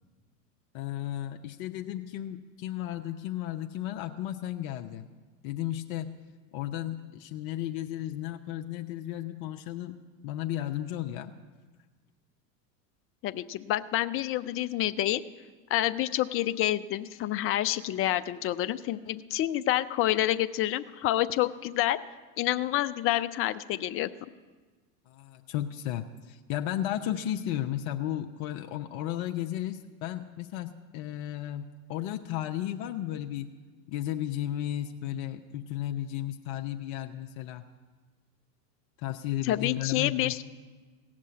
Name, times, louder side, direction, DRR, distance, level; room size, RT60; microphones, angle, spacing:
voice 1, 0.7-5.1 5.4-6.1 6.5-10.0 10.2-11.3 25.1-31.6 31.9-33.5 33.9-37.6 39.0-40.3, left 12 dB, 55° left, 5 dB, 0.8 m, -34 dB
voice 2, 13.2-15.2 15.7-22.0 22.4-24.1 39.4-40.4, left 14 dB, 30° left, 14 dB, 0.4 m, -28 dB
16.5 x 7.5 x 8.5 m, 1.4 s
hypercardioid pair, 95°, 49 cm